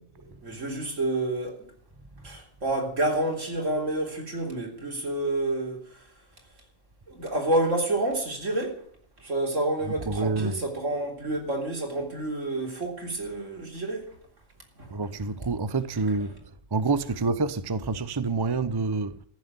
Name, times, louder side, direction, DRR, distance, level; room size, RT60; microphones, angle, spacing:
voice 1, 0.2-1.5 2.2-5.8 7.1-8.8 9.2-14.0 14.8-14.9, right 2 dB, 80° right, 4.0 m, -29 dB
voice 2, 9.9-10.7 14.9-16.4 16.7-19.2, right 3 dB, 25° right, 0.6 m, -27 dB
14.5 x 7.4 x 9.5 m
omnidirectional pair, 1.3 m